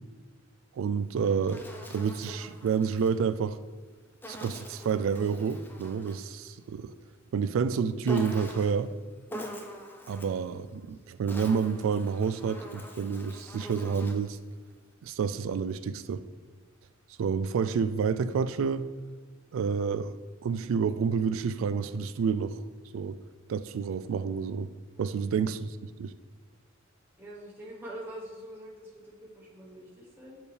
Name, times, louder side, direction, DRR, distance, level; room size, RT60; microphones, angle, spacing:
voice 1, 0.8-1.7 1.9-3.6 4.3-6.9 7.3-8.9 10.1-14.4 15.0-16.2 17.2-18.9 19.5-20.2 20.4-22.6 22.9-23.2 23.5-24.7 25.0-26.1, right 6 dB, 75° right, 0.3 m, -29 dB
Insect, 1.0-3.2 4.2-6.3 8.1-8.9 9.3-10.4 11.1-14.3, equal, 10° left, 0.5 m, -43 dB
voice 2, 27.2-30.4, right 1 dB, 10° right, 1.1 m, -45 dB
7.1 x 4.3 x 3.3 m
head